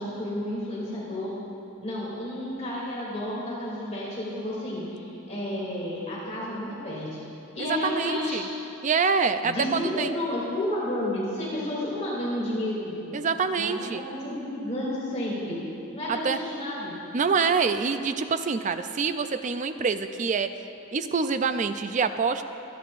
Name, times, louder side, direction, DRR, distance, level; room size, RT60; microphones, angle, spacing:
voice 1, 0.0-1.4 1.8-7.2 7.5-8.4 9.4-13.0 13.5-15.6 15.9-16.9, left 1 dB, 30° left, -7 dB, 2.8 m, -31 dB
voice 2, 7.7-8.5 8.8-10.1 13.1-14.0 16.1-16.4 17.1-20.5 20.9-22.4, right 5 dB, 35° right, 9 dB, 0.4 m, -26 dB
25.0 x 10.0 x 2.5 m, 2.9 s
head